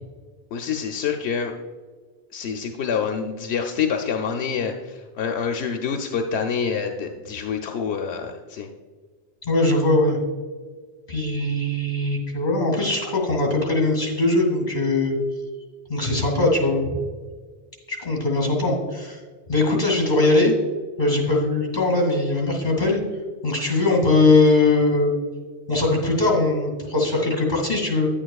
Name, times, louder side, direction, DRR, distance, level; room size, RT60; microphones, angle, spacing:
voice 1, 0.5-1.5 2.3-8.7, left 6 dB, 85° left, 4 dB, 0.9 m, -27 dB
voice 2, 9.4-10.2 11.1-15.2 15.9-16.9 17.9-19.2 19.5-20.5 21.0-23.0 23.4-25.1 25.7-28.1, left 2 dB, 45° left, 0 dB, 2.5 m, -20 dB
9.9 x 8.7 x 2.3 m, 1.5 s
omnidirectional pair, 1.1 m